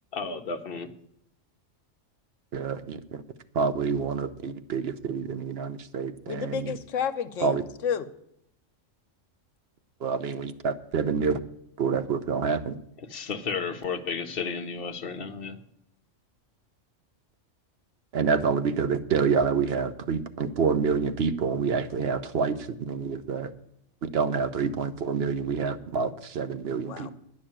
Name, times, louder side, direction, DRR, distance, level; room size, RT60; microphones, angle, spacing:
voice 1, 0.1-0.9 13.0-15.6, left 5 dB, 50° left, 7 dB, 1.0 m, -33 dB
voice 2, 2.5-3.2 3.5-6.8 7.4-7.6 10.0-11.4 11.8-12.8 18.1-23.5 24.0-27.1, right 5 dB, 60° right, 10 dB, 1.0 m, -27 dB
voice 3, 6.3-8.0 26.9-27.1, left 7 dB, 85° left, 10 dB, 1.2 m, -31 dB
10.0 x 6.4 x 8.8 m, 0.74 s
omnidirectional pair, 1.3 m